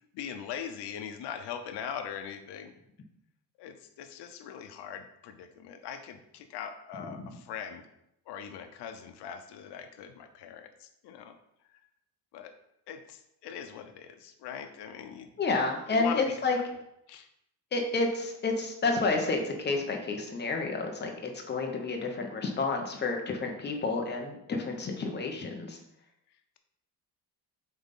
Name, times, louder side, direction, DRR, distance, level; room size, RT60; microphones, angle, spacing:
voice 1, 0.1-2.7 3.6-7.8 8.3-11.3 12.3-12.5 12.9-15.3 15.9-16.5 17.1-17.3, left 8 dB, 90° left, 7 dB, 0.8 m, -41 dB
voice 2, 15.4-16.6 17.7-25.8, left 3 dB, 25° left, 2 dB, 1.1 m, -30 dB
8.0 x 3.5 x 5.5 m, 0.79 s
cardioid pair, 160°, 39 cm